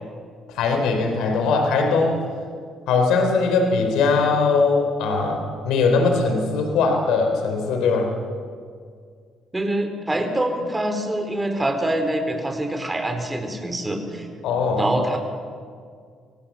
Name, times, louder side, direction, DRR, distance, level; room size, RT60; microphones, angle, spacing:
voice 1, 0.5-2.2 2.9-8.1 14.4-14.9, left 4 dB, 80° left, 4 dB, 3.6 m, -20 dB
voice 2, 9.5-14.3 14.8-15.2, right 1 dB, 15° right, 5 dB, 4.5 m, -25 dB
26.0 x 17.5 x 7.6 m, 2.1 s
supercardioid pair, 65°, 0 cm